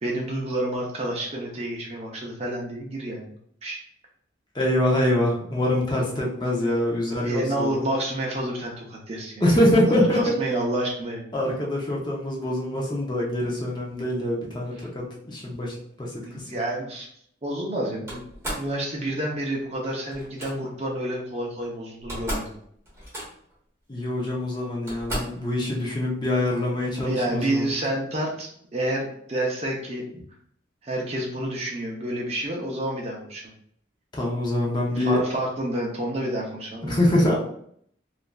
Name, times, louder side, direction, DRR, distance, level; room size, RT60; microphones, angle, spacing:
voice 1, 0.0-3.3 3.6-3.8 7.2-9.4 10.2-11.2 16.2-17.1 17.4-22.5 25.6-25.7 27.0-30.0 30.8-33.5 35.0-37.0, right 1 dB, 30° right, -1 dB, 0.5 m, -29 dB
voice 2, 4.5-7.8 9.4-10.4 11.3-16.7 23.9-27.7 34.1-35.4 36.8-37.4, left 1 dB, 20° left, -3 dB, 0.5 m, -24 dB
Slam, 18.1-18.7 20.1-20.5 21.6-21.7 21.9-22.6 22.8-23.5 24.3-24.4 24.9-25.4, equal, 15° right, 0.9 m, -33 dB
3.0 x 2.4 x 2.2 m, 0.65 s
head